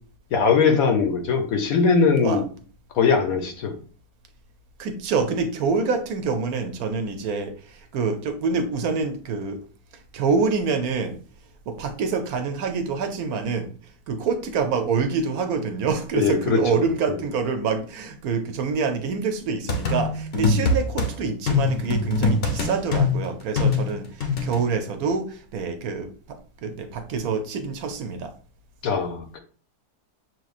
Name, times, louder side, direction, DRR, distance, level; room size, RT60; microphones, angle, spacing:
voice 1, 0.3-2.4 3.0-3.8 16.1-16.9 28.8-29.4, left 5 dB, 65° left, 6 dB, 1.1 m, -21 dB
voice 2, 4.8-9.6 9.9-11.2 11.7-28.3, right 5 dB, 70° right, 7 dB, 1.1 m, -26 dB
sound 1, 19.7-21.1 21.5-24.6, left 3 dB, 45° left, 0.8 m, -23 dB
6.2 x 3.0 x 2.4 m, 0.42 s
omnidirectional pair, 1.7 m